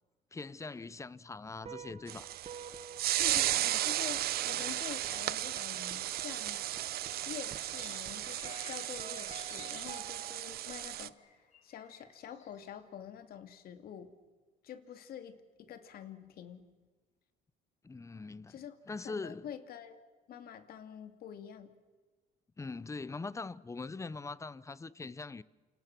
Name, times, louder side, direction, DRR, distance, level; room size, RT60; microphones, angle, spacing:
voice 1, 0.3-2.3 17.8-18.6 18.9-19.5 22.6-25.4, left 3 dB, 15° left, 0.8 m, -42 dB
sound 1, 1.6-10.6, right 6 dB, 40° right, 1.8 m, -51 dB
sound 2, 2.1-11.1, right 14 dB, 65° right, 0.8 m, -35 dB
voice 2, 3.2-6.6 7.3-11.2 11.6-14.1 14.6-16.7 18.5-18.8 19.0-20.0 20.3-21.7, left 9 dB, 65° left, 2.5 m, -47 dB
sound 3, 7.1-10.5 10.8-12.7, left 4 dB, 45° left, 6.3 m, -54 dB
28.5 x 27.5 x 6.1 m
cardioid pair, 110°, 17 cm